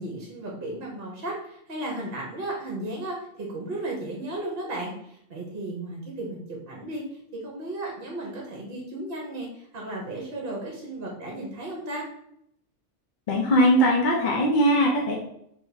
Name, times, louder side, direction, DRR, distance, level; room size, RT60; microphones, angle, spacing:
voice 1, 0.0-12.0, right 1 dB, 50° right, -2 dB, 0.9 m, -35 dB
voice 2, 13.3-15.1, equal, 50° left, -2 dB, 0.6 m, -20 dB
3.4 x 2.9 x 4.0 m, 0.73 s
omnidirectional pair, 1.3 m